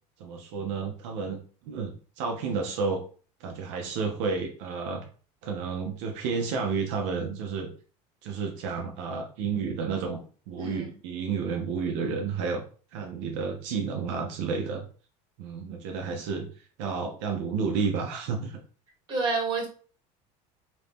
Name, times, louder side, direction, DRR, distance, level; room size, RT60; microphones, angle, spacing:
voice 1, 0.2-1.4 1.6-3.0 3.4-5.0 5.4-7.7 8.2-10.2 10.5-12.6 12.9-14.8 15.4-18.6, right 5 dB, 75° right, 2 dB, 0.6 m, -31 dB
voice 2, 10.6-10.9 19.1-19.7, right 4 dB, 30° right, 0 dB, 1.3 m, -28 dB
2.9 x 2.6 x 3.5 m, 0.41 s
cardioid pair, 160°, 16 cm